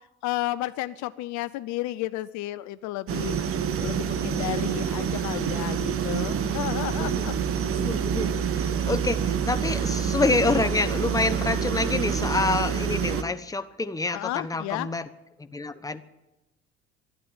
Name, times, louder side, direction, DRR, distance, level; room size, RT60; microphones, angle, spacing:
voice 1, 0.2-3.4 3.8-7.3 7.7-7.8 14.1-14.9, left 16 dB, 60° left, 15 dB, 0.6 m, -32 dB
sound 1, 3.1-13.2, right 7 dB, 40° right, 1.3 m, -27 dB
voice 2, 7.8-15.1 15.4-16.0, left 3 dB, 10° left, 10 dB, 1.0 m, -27 dB
12.5 x 12.0 x 9.8 m, 1.0 s
hypercardioid pair, 70°, 33 cm